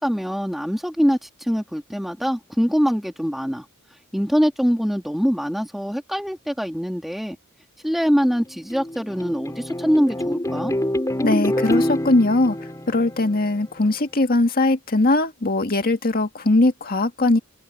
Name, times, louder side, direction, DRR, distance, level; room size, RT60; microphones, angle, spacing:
voice 1, 0.0-3.6 4.1-7.4 7.8-10.7, equal, ahead, 2.5 m, -23 dB
sound 1, 8.5-13.8, left 1 dB, 15° left, 4.4 m, -27 dB
voice 2, 11.2-12.6 12.9-17.4, left 2 dB, 45° left, 2.0 m, -20 dB
head